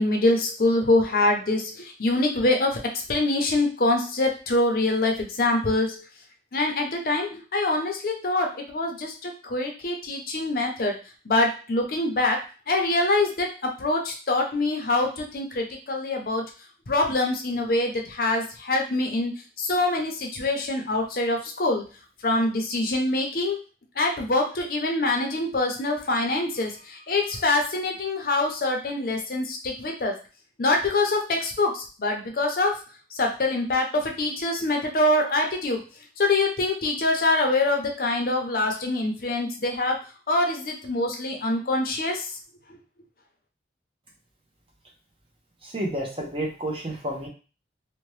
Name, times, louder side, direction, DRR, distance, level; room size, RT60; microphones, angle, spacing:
voice 1, 0.0-6.1 6.5-11.0 11.3-16.4 16.9-21.8 22.2-23.6 24.0-30.2 30.6-32.8 33.1-35.8 36.2-40.0 40.3-42.3, left 2 dB, 55° left, 2 dB, 0.6 m, -25 dB
voice 2, 45.6-47.3, right 1 dB, 30° right, -1 dB, 0.7 m, -30 dB
2.8 x 2.2 x 3.1 m, 0.34 s
head